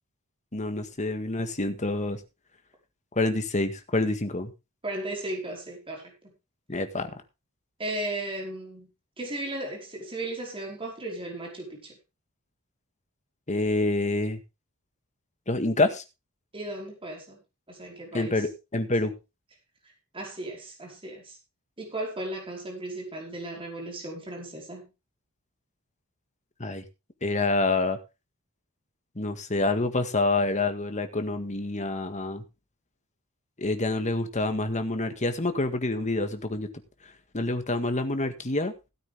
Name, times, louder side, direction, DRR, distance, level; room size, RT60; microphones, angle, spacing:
voice 1, 0.5-2.2 3.2-4.5 6.7-7.1 13.5-14.4 15.5-16.0 18.1-19.1 26.6-26.8 27.2-28.0 29.2-32.4 33.6-36.7 37.3-38.7, left 2 dB, 35° left, 8 dB, 1.8 m, -27 dB
voice 2, 4.8-6.3 7.8-12.0 16.5-17.4 17.7-18.4 20.1-21.4 21.8-24.9, right 1 dB, 25° right, 0 dB, 5.0 m, -36 dB
16.5 x 8.9 x 3.6 m, 0.28 s
head